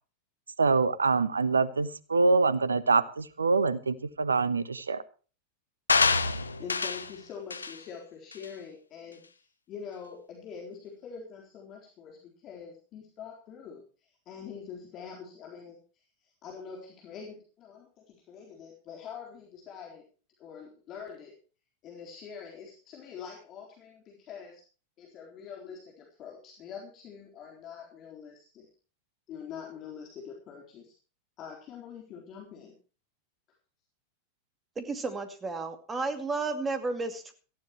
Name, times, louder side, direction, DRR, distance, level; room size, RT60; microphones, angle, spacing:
voice 1, 0.6-5.0, right 4 dB, 75° right, 18 dB, 1.0 m, -25 dB
sound 1, 5.9-7.1 7.5-7.8 8.3-8.5, left 4 dB, 75° left, 0.8 m, -26 dB
voice 2, 6.6-9.2 9.7-13.8 14.3-15.8 16.2-20.0 20.4-21.4 21.8-24.6 25.0-28.7 29.3-30.9 31.4-32.7, left 7 dB, 35° left, -1 dB, 3.9 m, -44 dB
voice 3, 34.8-37.3, right 3 dB, 15° right, 9 dB, 2.4 m, -32 dB
18.0 x 15.0 x 3.1 m, 0.37 s
figure-of-eight pair, 90°, 0 cm